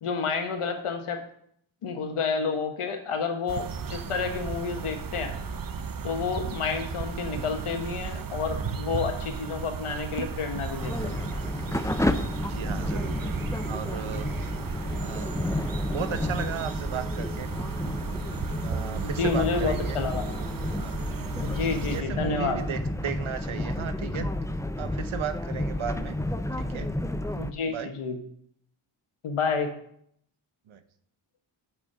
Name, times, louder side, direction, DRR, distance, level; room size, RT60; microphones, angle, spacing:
voice 1, 0.0-1.2 1.8-5.3 6.0-11.2 19.0-20.2 21.4-22.6 27.4-28.2 29.2-29.7, left 5 dB, 85° left, 6 dB, 1.2 m, -30 dB
sound 1, 3.5-22.0, right 5 dB, 45° right, 0.8 m, -35 dB
sound 2, 10.8-27.5, left 1 dB, 5° left, 0.5 m, -31 dB
voice 2, 12.4-13.3 13.7-14.3 14.9-15.4 15.9-17.5 18.6-20.0 20.8-21.1 21.9-24.3 24.8-26.2 26.6-26.9 27.7-27.9 30.7-30.8, right 8 dB, 75° right, 11 dB, 0.9 m, -35 dB
6.3 x 6.3 x 5.5 m, 0.67 s
cardioid pair, 50°, 49 cm